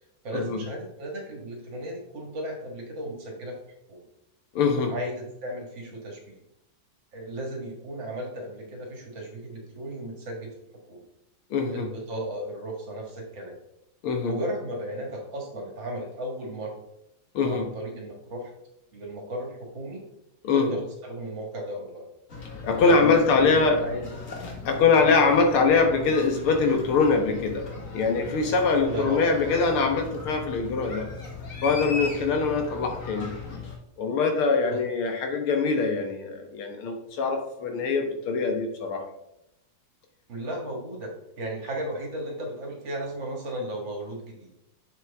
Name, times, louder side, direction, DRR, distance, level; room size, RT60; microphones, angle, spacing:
voice 1, 0.2-3.6 3.9-4.0 4.8-6.4 7.1-10.5 10.9-11.0 11.7-13.6 14.2-16.7 17.4-18.5 18.9-20.0 20.5-22.1 22.8-24.1 28.8-29.3 34.7-34.8 40.3-44.5, right 1 dB, 60° right, 0 dB, 2.4 m, -35 dB
voice 2, 4.6-4.9 11.5-11.9 14.0-14.3 17.3-17.7 20.4-20.8 22.6-23.9 24.7-27.7 27.9-31.1 31.6-33.3 34.0-39.1, left 4 dB, 80° left, 4 dB, 2.0 m, -23 dB
sound 1, 22.3-33.8, left 4 dB, 45° left, 1.5 m, -38 dB
7.6 x 6.0 x 3.5 m, 0.84 s
omnidirectional pair, 2.4 m